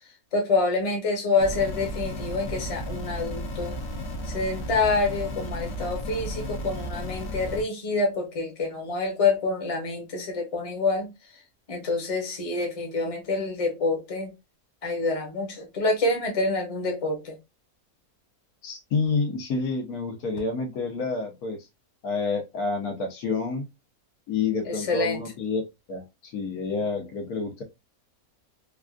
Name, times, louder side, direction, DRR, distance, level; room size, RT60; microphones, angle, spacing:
voice 1, 0.3-3.8 4.3-11.1 11.7-14.3 14.8-17.4 24.6-25.2, left 3 dB, 30° left, 0.9 m, -27 dB
sound 1, 1.4-7.6, equal, 55° left, 0.9 m, -34 dB
voice 2, 18.6-21.6 22.0-23.6 24.3-27.6, left 4 dB, 80° left, 1.4 m, -29 dB
3.4 x 2.4 x 2.4 m
omnidirectional pair, 1.6 m